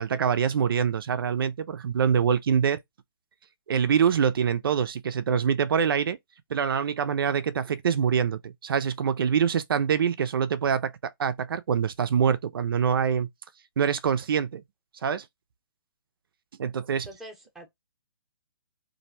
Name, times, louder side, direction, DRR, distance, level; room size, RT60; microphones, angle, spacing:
voice 1, 0.0-2.8 3.7-6.2 6.5-13.3 13.8-14.6 15.0-15.3 16.6-17.1, right 7 dB, 70° right, 0.4 m, -25 dB
voice 2, 16.9-17.7, right 1 dB, 5° right, 0.8 m, -45 dB
2.6 x 2.1 x 4.0 m
hypercardioid pair, 150°, 12 cm